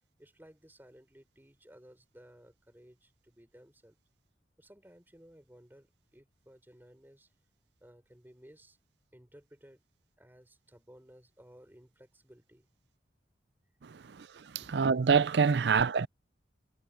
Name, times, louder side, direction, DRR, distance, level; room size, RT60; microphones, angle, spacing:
voice 1, 0.2-4.0 4.6-7.3 7.8-8.8 9.1-9.8 10.2-12.7 14.6-14.7, equal, 10° right, 4.7 m, -57 dB
voice 2, 14.7-16.1, right 5 dB, 65° right, 0.5 m, -25 dB
head